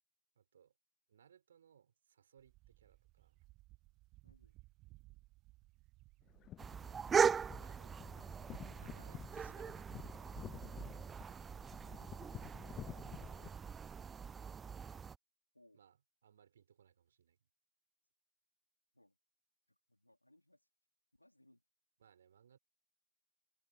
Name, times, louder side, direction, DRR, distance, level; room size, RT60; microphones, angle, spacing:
voice 1, 0.3-0.7 1.1-3.4 7.6-7.9 8.8-9.9 15.7-16.0 16.2-17.4 22.0-22.6, right 8 dB, 65° right, 4.7 m, -66 dB
sound 1, 2.4-10.9, right 20 dB, 40° right, 1.4 m, -62 dB
voice 2, 4.2-4.6 15.5-15.8 18.9-19.2 19.7-20.6 21.2-21.6, left 1 dB, 85° left, 3.4 m, -68 dB
sound 2, 6.3-13.5, left 12 dB, 30° left, 0.3 m, -52 dB
sound 3, 6.6-15.2, right 6 dB, 20° right, 0.5 m, -39 dB
figure-of-eight pair, 90°, 0 cm